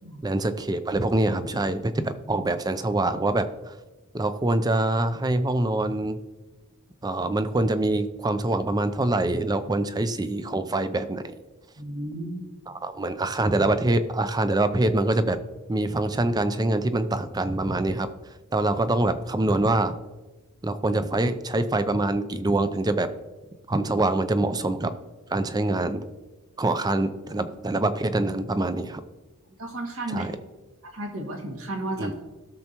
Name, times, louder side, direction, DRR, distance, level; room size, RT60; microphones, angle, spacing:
voice 1, 0.2-3.7 4.1-6.2 7.0-11.4 12.7-15.4 15.7-18.1 18.5-20.0 20.6-23.1 23.7-24.9 25.3-26.0 26.6-29.0 30.1-30.3 32.0-32.1, right 2 dB, 20° right, 11 dB, 0.5 m, -25 dB
voice 2, 11.8-12.4 29.6-30.3 30.8-32.3, right 1 dB, 70° right, 1 dB, 2.0 m, -33 dB
17.0 x 6.7 x 3.0 m, 1.2 s
head